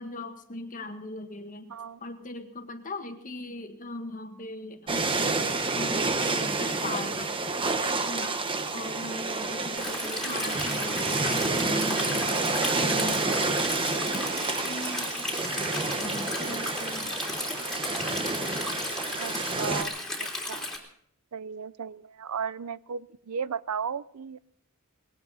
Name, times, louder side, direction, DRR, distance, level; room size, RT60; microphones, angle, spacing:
voice 1, 0.0-7.3 7.9-8.4 8.7-15.5 16.0-17.1, left 2 dB, 35° left, 6 dB, 1.7 m, -40 dB
voice 2, 1.7-2.0 10.2-10.5 19.2-20.7 21.3-24.4, right 6 dB, 80° right, 18 dB, 0.5 m, -35 dB
sound 1, 4.9-19.8, right 3 dB, 25° right, 1.2 m, -29 dB
sound 2, 7.2-7.3 8.2-8.4 9.4-9.6 11.2-11.4 12.3-12.4 13.4-13.5 14.4-14.6 15.7-15.9 16.8-16.9, left 8 dB, 60° left, 1.4 m, -45 dB
Stream, 9.8-20.8, left 1 dB, 5° left, 3.2 m, -34 dB
20.5 x 17.0 x 4.1 m, 0.65 s
head